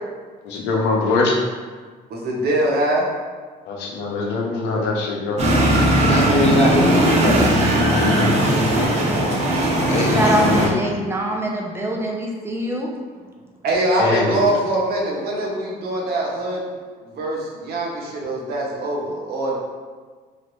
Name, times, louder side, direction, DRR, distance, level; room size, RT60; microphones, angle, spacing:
voice 1, 0.4-1.4 3.7-5.4 13.9-14.4, left 3 dB, 90° left, 0 dB, 0.6 m, -22 dB
voice 2, 2.1-3.1 5.9-6.2 6.5-7.1 13.6-16.6 17.0-19.6, right 1 dB, 70° right, -2 dB, 0.8 m, -23 dB
sound 1, 5.4-10.7, right 1 dB, 40° right, 0.8 m, -18 dB
voice 3, 6.0-8.4 9.9-10.8, left 3 dB, 40° left, 3 dB, 0.4 m, -23 dB
voice 4, 10.0-12.9, right 1 dB, 15° right, -1 dB, 0.5 m, -24 dB
3.1 x 2.5 x 3.0 m, 1.5 s
cardioid pair, 110°, 17 cm